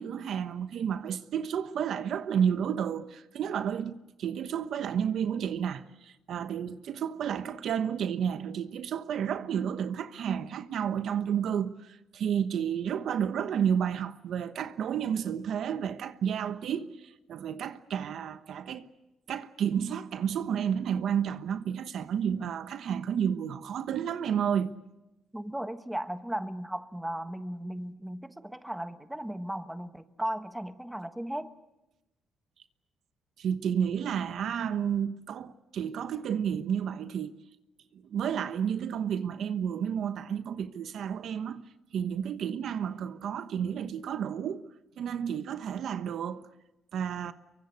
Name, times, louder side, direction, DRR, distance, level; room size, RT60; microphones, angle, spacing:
voice 1, 0.0-18.9 19.3-24.7 33.4-37.3 37.9-41.6 41.9-44.6 45.0-46.4 46.9-47.3, right 8 dB, 70° right, 1.1 m, -31 dB
voice 2, 25.3-31.5, right 1 dB, 5° right, 1.4 m, -36 dB
23.5 x 23.5 x 8.2 m
cardioid pair, 90°, 0 cm